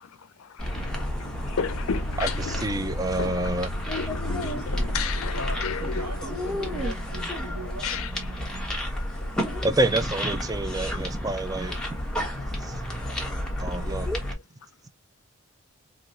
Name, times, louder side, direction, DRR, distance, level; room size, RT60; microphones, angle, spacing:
voice 1, 0.4-2.7 3.1-3.4 4.0-6.0 6.4-6.5 7.8-8.1 9.4-9.6 11.7-11.8 13.6-13.8, left 6 dB, 70° left, 0.5 m, -33 dB
sound 1, 0.6-14.3, left 1 dB, 5° left, 1.1 m, -31 dB
voice 2, 2.2-3.7 9.6-12.0 12.6-13.0 13.6-14.1, right 2 dB, 15° right, 0.4 m, -28 dB
voice 3, 4.3-8.3, right 1 dB, 85° right, 2.0 m, -40 dB
4.7 x 3.0 x 2.5 m
head